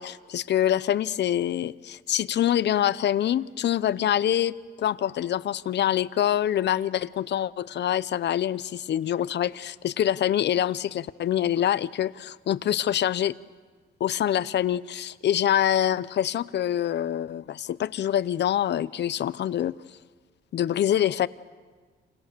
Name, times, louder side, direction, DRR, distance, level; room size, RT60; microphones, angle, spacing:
voice 1, 0.0-13.4 14.0-19.7 20.5-21.3, left 11 dB, 60° left, 17 dB, 0.8 m, -25 dB
29.0 x 28.0 x 6.9 m, 1.5 s
cardioid pair, 90°, 20 cm